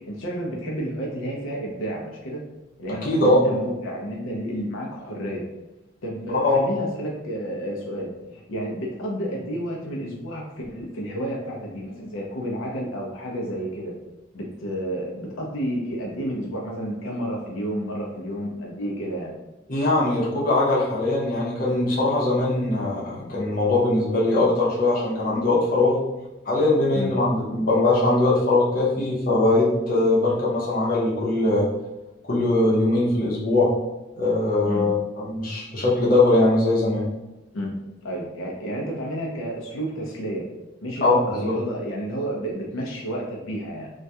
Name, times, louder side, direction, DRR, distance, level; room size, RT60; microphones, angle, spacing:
voice 1, 0.1-2.4 2.8-5.4 6.0-13.9 14.3-19.3 26.9-27.1 34.7-34.9 37.5-37.7 38.0-40.5 40.8-43.9, equal, 85° left, -2 dB, 0.5 m, -31 dB
voice 2, 2.9-3.4 6.3-6.7 19.7-26.0 26.5-31.7 32.3-33.7 34.1-37.1 41.0-41.1 41.4-41.5, left 2 dB, 45° left, -5 dB, 0.6 m, -21 dB
2.2 x 2.1 x 2.7 m, 1.0 s
head